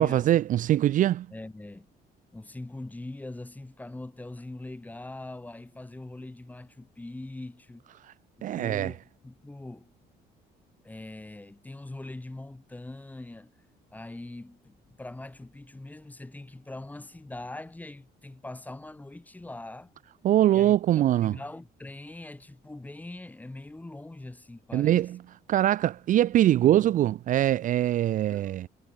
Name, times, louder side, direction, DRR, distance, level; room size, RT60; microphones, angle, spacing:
voice 1, 0.0-1.3 8.4-8.9 20.2-21.4 24.7-25.2 25.5-28.7, right 12 dB, 50° right, 0.4 m, -23 dB
voice 2, 1.3-1.9 2.3-7.8 8.4-9.9 10.8-13.5 13.9-19.9 20.5-25.1 28.3-28.6, left 2 dB, 10° left, 1.1 m, -42 dB
cardioid pair, 110°, 17 cm